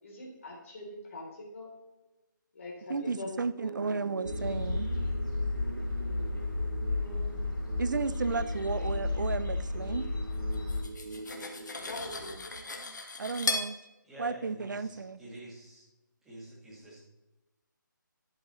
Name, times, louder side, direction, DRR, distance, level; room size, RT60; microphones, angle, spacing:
voice 1, 0.0-1.7 2.5-3.9 6.9-7.5 11.8-12.9, left 2 dB, 40° left, -2 dB, 3.5 m, -44 dB
voice 2, 2.9-4.9 7.8-10.1 13.2-13.8 14.2-15.2, right 4 dB, 65° right, 14 dB, 0.7 m, -33 dB
sound 1, 3.6-12.6, right 3 dB, 40° right, 1.0 m, -44 dB
sound 2, 4.3-10.8, left 2 dB, 80° left, 3.7 m, -32 dB
Cutlery silverware, 10.5-13.7, left 2 dB, 60° left, 1.7 m, -36 dB
voice 3, 14.0-15.9 16.2-17.0, right 1 dB, 5° right, -7 dB, 1.8 m, -47 dB
11.5 x 8.6 x 3.2 m, 1.0 s
figure-of-eight pair, 170°, 11 cm